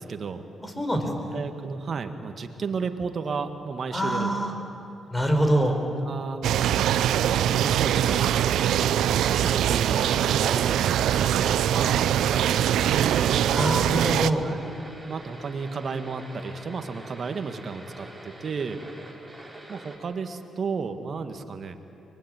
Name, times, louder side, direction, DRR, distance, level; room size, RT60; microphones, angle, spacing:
voice 1, 0.0-0.4 1.3-4.3 4.6-4.7 5.9-8.8 9.4-13.4 14.4-14.6 15.1-18.8 19.7-21.8, right 5 dB, 55° right, 7 dB, 1.8 m, -33 dB
voice 2, 0.6-1.4 3.9-4.5 5.1-5.8 13.5-14.5, right 1 dB, 15° left, 4 dB, 4.7 m, -25 dB
sound 1, 6.4-14.3, right 11 dB, 80° right, 0.5 m, -23 dB
sound 2, 7.9-20.0, right 1 dB, 5° right, 5.6 m, -45 dB
24.0 x 20.0 x 9.1 m, 2.8 s
supercardioid pair, 60°, 0 cm